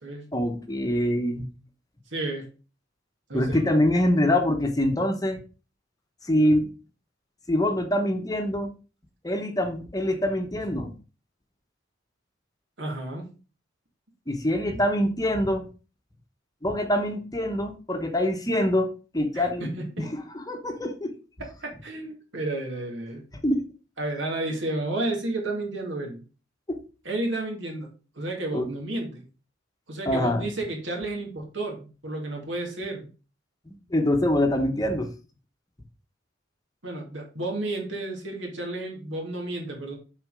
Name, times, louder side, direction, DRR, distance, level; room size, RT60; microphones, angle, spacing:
voice 1, 0.3-1.5 3.3-5.4 6.3-6.7 7.5-8.7 9.2-10.9 14.3-15.7 16.6-19.7 20.1-21.1 23.4-23.6 26.7-26.8 28.5-28.7 30.1-30.5 33.7-35.1, left 1 dB, 20° left, 5 dB, 1.0 m, -24 dB
voice 2, 2.1-2.5 3.3-3.6 12.8-13.3 19.3-20.1 21.4-23.2 24.0-26.2 27.0-29.3 29.9-33.1 36.8-40.0, right 2 dB, 75° right, 1 dB, 2.5 m, -32 dB
7.0 x 4.3 x 4.9 m, 0.34 s
head